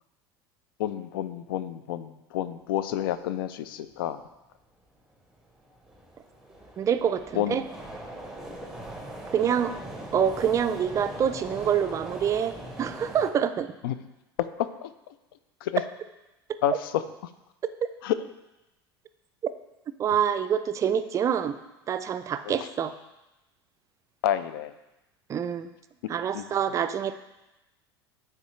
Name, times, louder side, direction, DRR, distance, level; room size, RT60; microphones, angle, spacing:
voice 1, 0.8-4.2 7.3-7.6 13.8-14.0 14.6-14.9 15.6-15.8 16.6-17.0 18.0-18.2 22.4-22.7 24.2-24.7 26.3-26.5, left 11 dB, 60° left, 13 dB, 0.4 m, -29 dB
sound 1, 4.6-4.7 5.3-13.3, right 1 dB, 5° right, 0.7 m, -41 dB
voice 2, 6.8-7.6 9.3-9.7 10.1-13.7 20.0-21.6 21.9-22.9 25.3-25.7 26.1-27.2, right 8 dB, 25° right, 11 dB, 0.3 m, -26 dB
9.0 x 3.3 x 3.1 m, 0.98 s
figure-of-eight pair, 75°, 13 cm